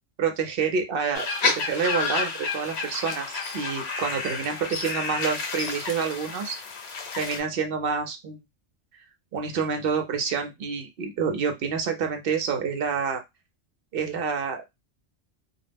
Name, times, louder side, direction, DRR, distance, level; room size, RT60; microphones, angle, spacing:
voice 1, 0.2-6.6 7.1-8.4 9.3-13.2 13.9-14.6, right 6 dB, 60° right, 5 dB, 0.7 m, -28 dB
sound 1, 1.1-7.4, left 4 dB, 65° left, 0.9 m, -30 dB
2.4 x 2.0 x 3.2 m, 0.20 s
omnidirectional pair, 1.2 m